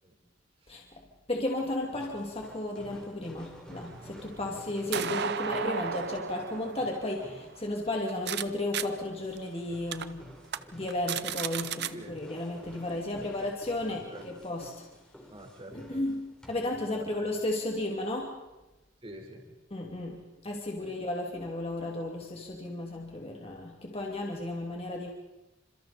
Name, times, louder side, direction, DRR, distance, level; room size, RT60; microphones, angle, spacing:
voice 1, 1.3-10.2 10.7-14.7 15.9-18.3 19.7-25.1, left 1 dB, 30° left, 0 dB, 2.7 m, -34 dB
sound 1, 1.9-16.8, equal, 5° left, 3.7 m, -52 dB
sound 2, 3.7-8.4 8.7-8.8 9.4-9.5 9.9-10.0 10.4-10.6 10.9-11.9, right 7 dB, 60° right, 0.8 m, -35 dB
voice 2, 13.8-14.2 15.3-16.0 16.9-17.3 19.0-19.4 20.8-20.9, equal, 30° right, 0 dB, 4.5 m, -47 dB
28.5 x 27.0 x 4.3 m, 1.0 s
head